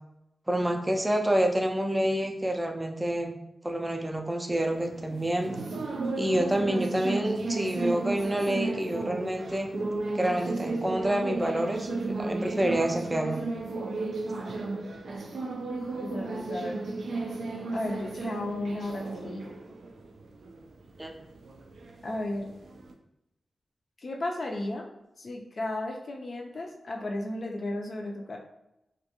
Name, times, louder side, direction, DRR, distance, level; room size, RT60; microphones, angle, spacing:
voice 1, 0.5-3.3 3.6-5.5 6.2-9.7 10.1-11.9 12.2-13.4 21.0-21.1, right 1 dB, 15° right, 3 dB, 0.4 m, -28 dB
sound 1, 4.5-22.9, right 3 dB, 85° right, 0.3 m, -34 dB
voice 2, 16.0-16.8 17.7-19.5 22.0-22.5 24.0-24.9 25.2-28.4, left 1 dB, 55° left, 0 dB, 0.3 m, -34 dB
2.4 x 2.1 x 2.8 m, 0.88 s
wide cardioid pair, 85°, 0 cm